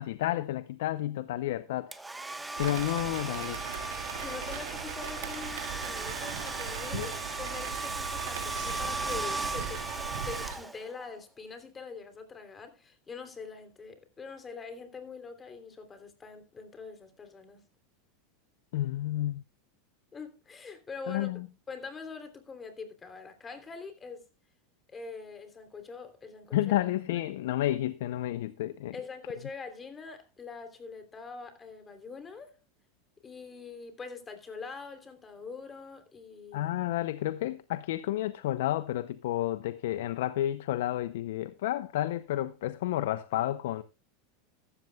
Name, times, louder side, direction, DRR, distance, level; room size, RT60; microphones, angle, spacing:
voice 1, 0.0-1.9 2.6-3.6 6.9-7.1 18.7-19.4 21.1-21.5 26.5-29.0 36.5-43.8, left 14 dB, 75° left, 0.6 m, -31 dB
Domestic sounds home sounds, 1.9-11.1, right 2 dB, 10° right, 1.2 m, -37 dB
sound 1, 2.6-10.6, right 8 dB, 80° right, 2.2 m, -39 dB
voice 2, 4.2-9.8 10.2-17.6 20.1-21.3 21.7-24.2 24.9-26.6 28.9-32.6 33.2-36.7, left 4 dB, 25° left, 3.1 m, -44 dB
15.0 x 13.0 x 2.3 m
hypercardioid pair, 105°, 0 cm